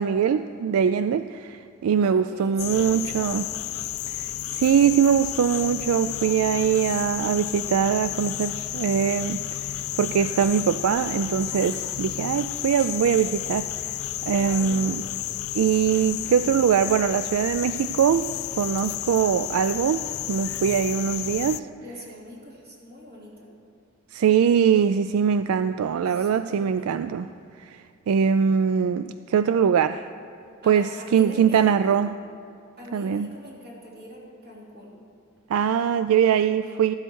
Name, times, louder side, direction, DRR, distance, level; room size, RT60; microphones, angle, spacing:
voice 1, 0.0-3.4 4.1-9.4 10.0-14.0 14.3-15.0 15.5-18.3 18.6-20.0 20.3-21.7 24.1-27.3 27.6-30.0 30.7-32.1 32.9-33.3 35.5-36.9, right 7 dB, 80° right, 12 dB, 0.3 m, -22 dB
voice 2, 2.0-3.5 12.3-12.5 14.3-14.9 21.8-23.5 26.0-27.0 30.6-32.0 32.8-35.0, equal, 45° right, -4 dB, 3.2 m, -43 dB
sound 1, 2.6-21.6, left 14 dB, 70° left, 0.3 m, -32 dB
14.0 x 12.0 x 4.6 m, 2.4 s
head